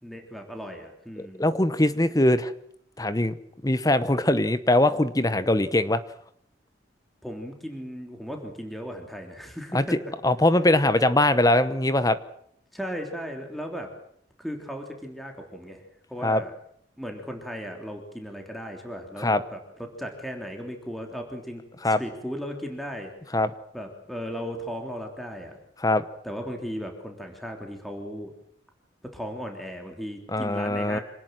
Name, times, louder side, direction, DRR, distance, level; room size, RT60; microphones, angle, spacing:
voice 1, 0.0-1.5 7.2-10.1 12.7-13.9 14.4-15.8 16.1-16.5 17.0-23.1 23.7-25.6 26.2-28.3 29.1-31.0, equal, ahead, 2 dB, 3.3 m, -36 dB
voice 2, 1.4-2.5 3.0-3.3 3.6-6.0 9.7-9.8 10.2-12.2 16.2-16.4 19.2-19.4 21.8-22.0 23.3-23.5 25.8-26.0 30.3-31.0, left 1 dB, 20° left, 13 dB, 1.0 m, -21 dB
26.5 x 19.0 x 7.6 m, 0.69 s
head